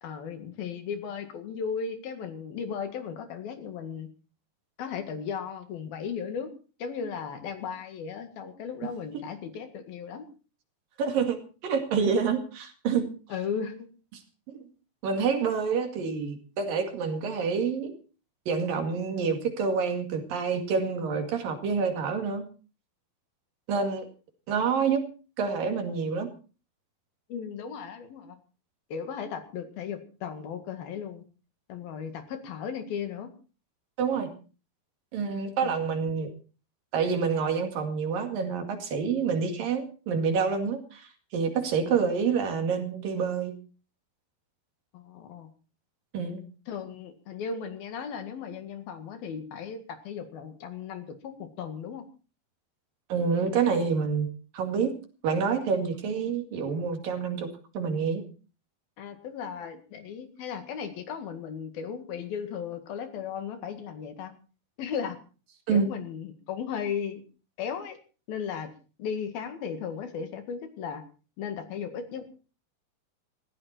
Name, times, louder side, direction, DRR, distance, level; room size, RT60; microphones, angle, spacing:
voice 1, 0.0-4.1 4.8-6.5 6.8-10.3 13.3-13.8 27.3-28.4 28.9-31.2 31.7-33.3 35.6-35.8 44.9-45.5 46.7-52.0 56.3-56.4 59.0-64.3 64.8-65.2 65.7-67.2 67.6-68.0 68.3-68.7 69.0-71.0 71.4-72.2, left 7 dB, 75° left, 8 dB, 3.8 m, -36 dB
voice 2, 11.0-11.4 11.6-13.1 15.0-17.9 18.5-22.4 23.7-24.1 24.5-25.0 25.4-26.3 34.0-34.3 35.1-36.3 36.9-41.1 41.3-43.5 46.1-46.4 53.1-54.3 54.5-54.9 55.2-57.5 57.7-58.2 65.7-65.9, right 5 dB, 65° right, 6 dB, 3.8 m, -27 dB
19.0 x 15.5 x 4.4 m, 0.36 s
omnidirectional pair, 4.3 m